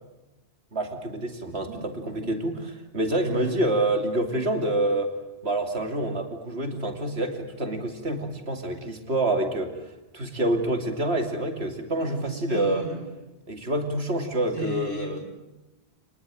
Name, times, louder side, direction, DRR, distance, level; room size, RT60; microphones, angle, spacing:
voice 1, 0.7-2.6 2.9-5.2 5.4-9.8 10.1-12.8 13.5-15.2, right 1 dB, 65° right, 5 dB, 3.1 m, -27 dB
voice 2, 1.4-2.3 3.3-3.8 11.9-13.0 14.5-15.2, equal, 80° left, 2 dB, 7.1 m, -37 dB
29.0 x 20.5 x 9.2 m, 1.0 s
omnidirectional pair, 1.2 m